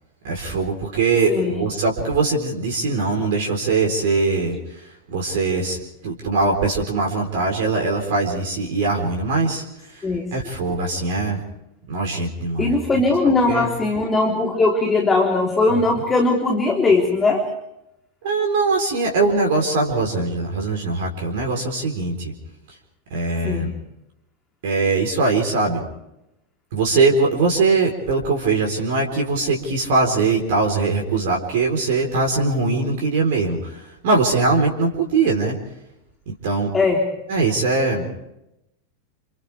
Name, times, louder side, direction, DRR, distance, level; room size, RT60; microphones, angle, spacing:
voice 1, 0.2-11.4 11.9-12.7 13.5-13.7 15.7-15.8 18.2-22.3 23.1-23.7 24.6-25.8 26.7-35.6 36.3-36.7 37.3-38.2, right 3 dB, 55° right, 2 dB, 4.2 m, -21 dB
voice 2, 12.6-17.5 23.4-23.7 36.7-37.0, left 3 dB, 15° left, 0 dB, 3.6 m, -19 dB
30.0 x 29.5 x 3.6 m, 0.87 s
figure-of-eight pair, 90°, 0 cm